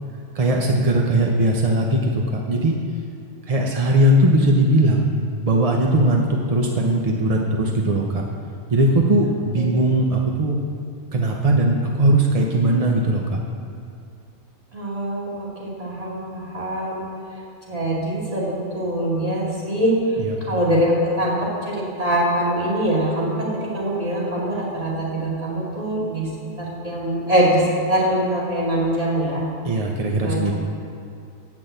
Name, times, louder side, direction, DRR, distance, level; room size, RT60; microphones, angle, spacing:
voice 1, 0.3-2.7 3.5-5.1 5.4-8.2 8.7-10.6 11.1-13.4 20.2-20.3 29.6-30.5, right 1 dB, 40° right, 0 dB, 0.5 m, -19 dB
voice 2, 14.7-17.1 17.7-20.0 20.4-26.3 26.6-29.4 30.1-30.4, right 1 dB, 25° right, -7 dB, 2.5 m, -23 dB
8.5 x 6.1 x 7.8 m, 2.5 s
omnidirectional pair, 1.6 m